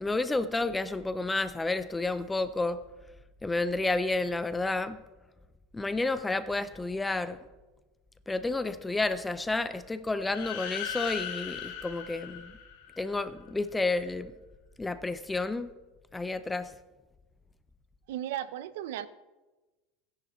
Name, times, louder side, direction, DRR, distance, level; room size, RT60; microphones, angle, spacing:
voice 1, 0.0-2.8 3.4-5.0 5.7-7.4 8.3-12.5 13.0-14.3 14.8-15.7 16.1-16.7, left 2 dB, 5° left, 12 dB, 0.3 m, -30 dB
sound 1, 10.2-13.1, left 9 dB, 80° left, 1.9 m, -38 dB
voice 2, 18.1-19.1, right 11 dB, 75° right, 16 dB, 0.5 m, -35 dB
16.0 x 10.0 x 3.0 m, 1.2 s
supercardioid pair, 170°, 0 cm